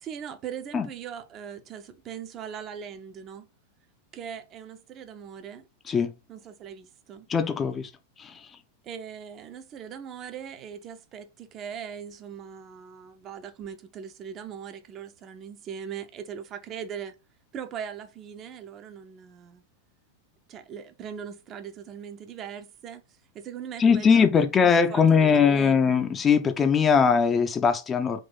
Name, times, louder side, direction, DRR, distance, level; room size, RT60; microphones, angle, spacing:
voice 1, 0.0-3.5 4.1-5.7 6.3-7.3 8.8-17.2 17.5-19.6 20.5-23.0 23.3-25.9, right 8 dB, 30° right, 0.5 m, -40 dB
voice 2, 7.3-7.9 8.2-8.4 23.8-28.2, left 6 dB, 20° left, 0.5 m, -21 dB
3.7 x 2.6 x 3.9 m
figure-of-eight pair, 90°, 0 cm